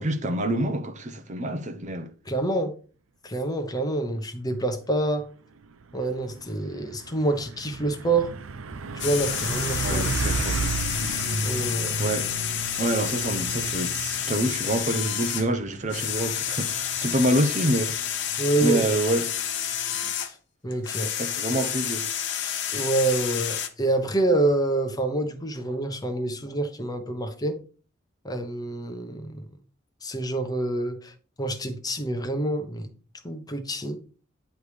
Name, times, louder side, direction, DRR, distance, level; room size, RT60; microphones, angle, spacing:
voice 1, 0.0-2.1 9.8-10.8 12.0-12.3 12.8-18.0 18.6-19.4 21.2-22.1, right 1 dB, 35° right, 0.8 m, -27 dB
voice 2, 2.3-2.7 3.2-5.3 5.9-8.3 8.9-10.0 11.4-11.9 18.4-18.8 20.2-20.3 20.6-21.1 22.7-27.6 28.2-29.3 30.0-31.1 31.4-32.9 33.2-34.0, right 2 dB, 20° left, 1.0 m, -27 dB
Truck, 5.6-19.9, right 3 dB, 90° right, 0.6 m, -34 dB
sound 1, 9.0-20.3 20.7-23.7, left 10 dB, 60° left, 0.9 m, -30 dB
9.8 x 3.4 x 4.8 m
head